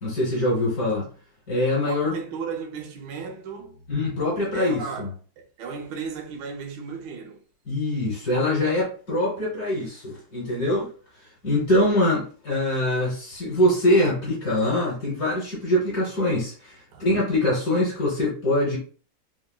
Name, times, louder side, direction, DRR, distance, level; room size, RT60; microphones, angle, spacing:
voice 1, 0.0-1.1 1.5-2.1 3.9-5.1 7.7-10.9 11.4-18.8, left 1 dB, 55° left, 1.6 m, -23 dB
voice 2, 1.8-3.9 4.5-7.4 16.9-17.0, right 6 dB, 70° right, 1.1 m, -35 dB
3.8 x 2.2 x 2.2 m
omnidirectional pair, 2.3 m